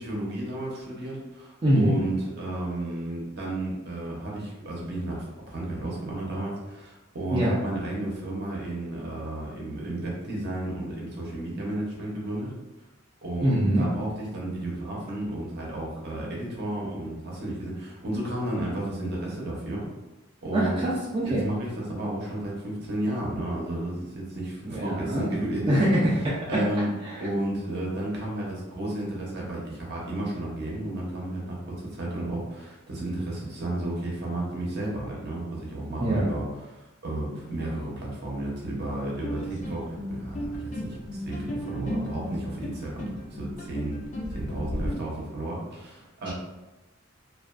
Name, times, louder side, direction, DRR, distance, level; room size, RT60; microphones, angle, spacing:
voice 1, 0.0-12.5 13.2-19.9 20.4-20.9 21.2-25.9 26.5-26.9 27.2-36.4 36.7-41.0 41.2-44.0 44.3-46.3, right 1 dB, 55° right, -3 dB, 0.7 m, -32 dB
voice 2, 1.6-1.9 7.3-7.5 13.4-13.9 20.5-21.4 24.6-25.3 25.7-26.2 27.0-27.2 36.0-36.2 46.2-46.3, right 1 dB, 25° right, -7 dB, 0.4 m, -24 dB
sound 1, 39.2-44.9, equal, 35° left, 0.4 m, -35 dB
2.4 x 2.2 x 2.4 m, 1.0 s
head